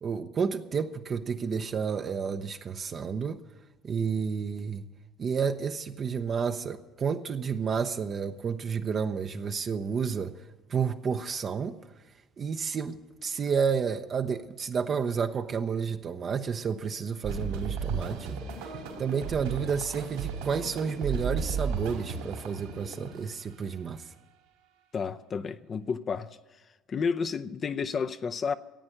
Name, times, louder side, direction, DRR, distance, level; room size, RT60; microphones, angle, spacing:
voice 1, 0.0-3.4 3.8-4.9 5.2-10.4 10.7-11.8 12.4-24.1, right 6 dB, 40° right, 0.7 m, -31 dB
sound 1, 17.2-23.3, right 6 dB, 85° right, 2.8 m, -34 dB
voice 2, 24.9-26.4 26.9-28.5, left 5 dB, 40° left, 0.6 m, -31 dB
14.0 x 8.8 x 9.8 m
hypercardioid pair, 70°, 0 cm